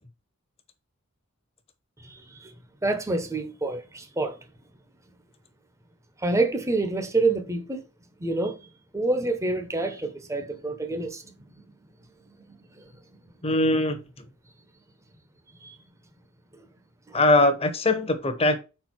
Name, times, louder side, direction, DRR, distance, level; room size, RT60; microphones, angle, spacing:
voice 1, 2.1-2.5 2.8-4.3 6.2-7.8 8.2-8.6 8.9-11.2 12.5-12.6 15.6-15.7 17.1-17.2, right 2 dB, 15° right, 0.8 m, -27 dB
voice 2, 13.4-14.2 17.1-18.6, left 2 dB, 25° left, 1.0 m, -22 dB
4.9 x 4.5 x 6.0 m
head